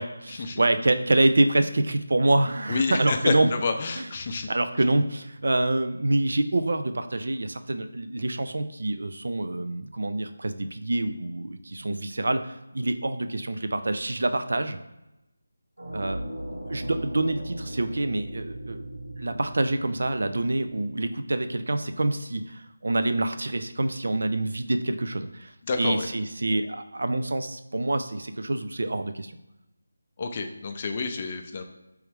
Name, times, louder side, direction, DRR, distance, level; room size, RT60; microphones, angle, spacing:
voice 1, 0.0-3.5 4.0-4.1 4.5-14.8 15.9-16.2 16.5-18.9 19.2-29.4, right 2 dB, 60° right, 9 dB, 0.3 m, -26 dB
voice 2, 2.7-4.5 25.7-26.1 30.2-31.6, left 4 dB, 35° left, 5 dB, 0.4 m, -29 dB
sound 1, 15.8-21.6, right 1 dB, 85° right, 1.5 m, -38 dB
3.3 x 3.1 x 3.2 m, 0.95 s
figure-of-eight pair, 160°, 0 cm